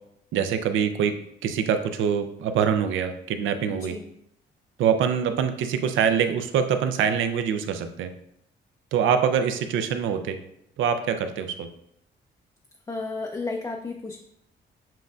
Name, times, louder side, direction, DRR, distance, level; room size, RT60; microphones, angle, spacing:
voice 1, 0.3-1.1 1.4-4.0 4.8-8.1 8.9-10.4 10.8-11.7, right 7 dB, 80° right, 8 dB, 0.5 m, -24 dB
voice 2, 3.7-4.1 12.9-14.2, left 3 dB, 20° left, 2 dB, 0.4 m, -33 dB
7.5 x 2.6 x 2.4 m, 0.76 s
cardioid pair, 90°, 20 cm